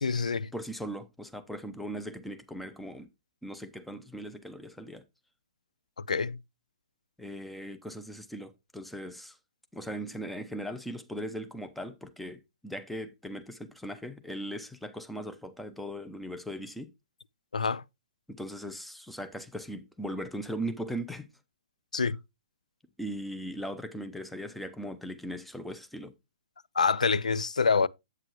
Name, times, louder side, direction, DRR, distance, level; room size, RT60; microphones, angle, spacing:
voice 1, 0.0-0.5 6.0-6.4 17.5-17.8 21.9-22.2 26.8-27.9, left 5 dB, 80° left, 0.3 m, -26 dB
voice 2, 0.5-3.1 3.4-5.0 7.2-9.4 9.7-16.9 18.3-21.3 23.0-26.1, equal, ahead, 0.7 m, -39 dB
8.1 x 7.6 x 2.9 m
figure-of-eight pair, 120°, 4 cm